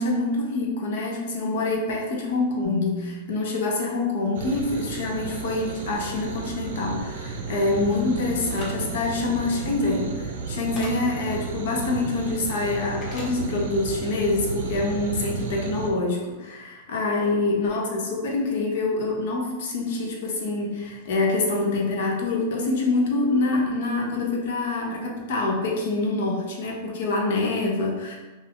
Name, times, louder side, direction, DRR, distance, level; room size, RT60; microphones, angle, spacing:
voice 1, 0.0-28.2, left 2 dB, 65° left, 0 dB, 0.7 m, -26 dB
sound 1, 2.6-3.2 6.1-9.5, left 1 dB, 10° right, 0.8 m, -40 dB
sound 2, 4.3-15.9, right 4 dB, 75° right, 0.5 m, -33 dB
sound 3, 8.5-8.7 10.8-10.9 13.0-13.3, left 1 dB, 25° left, 0.8 m, -37 dB
2.5 x 2.4 x 3.5 m, 1.2 s
supercardioid pair, 155°, 0 cm